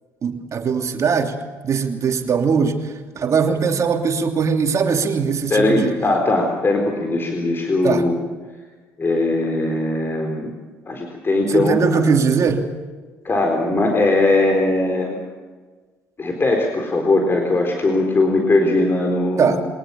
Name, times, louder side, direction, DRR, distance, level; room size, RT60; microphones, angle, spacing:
voice 1, 0.2-1.3 1.6-2.8 3.2-5.9 7.8-8.0 11.5-12.7 19.4-19.6, right 5 dB, 45° right, 4 dB, 2.9 m, -20 dB
voice 2, 5.5-8.2 9.0-10.5 10.9-12.0 13.2-15.2 16.2-19.6, left 2 dB, 30° left, 3 dB, 4.1 m, -19 dB
23.5 x 19.0 x 7.0 m, 1.4 s
hypercardioid pair, 60°, 7 cm